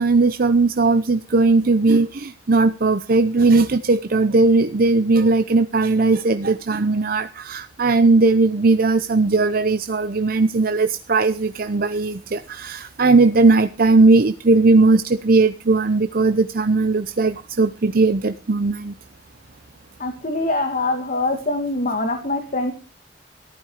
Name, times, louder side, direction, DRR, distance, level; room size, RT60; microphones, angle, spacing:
voice 1, 0.0-18.9, right 3 dB, 55° right, 10 dB, 0.7 m, -18 dB
voice 2, 20.0-22.7, left 2 dB, 45° left, 4 dB, 2.2 m, -23 dB
14.5 x 12.5 x 4.9 m, 0.33 s
head